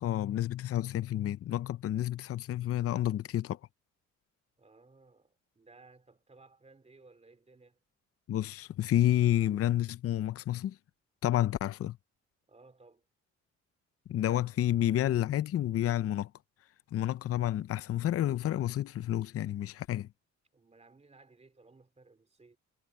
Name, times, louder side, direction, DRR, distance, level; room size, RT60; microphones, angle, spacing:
voice 1, 0.0-3.6 8.3-10.8 11.2-12.0 14.1-16.3 16.9-20.1, left 12 dB, 50° left, 0.6 m, -30 dB
voice 2, 4.6-7.8 12.5-13.0 20.5-22.6, right 3 dB, 20° right, 3.3 m, -59 dB
cardioid pair, 90°, 30 cm